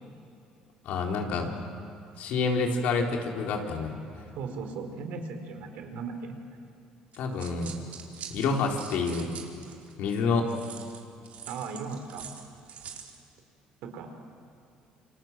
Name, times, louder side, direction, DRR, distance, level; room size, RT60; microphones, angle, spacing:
voice 1, 0.8-1.5 2.2-3.9 7.1-7.7 8.3-9.3 10.0-10.5, left 4 dB, 70° left, 1 dB, 4.3 m, -28 dB
voice 2, 4.4-6.3 11.4-12.2 13.8-14.1, right 4 dB, 75° right, 5 dB, 4.5 m, -37 dB
sound 1, 7.1-9.9 10.5-13.2, right 8 dB, 60° right, 4.2 m, -44 dB
28.5 x 26.0 x 7.7 m, 2.5 s
supercardioid pair, 80°, 3 cm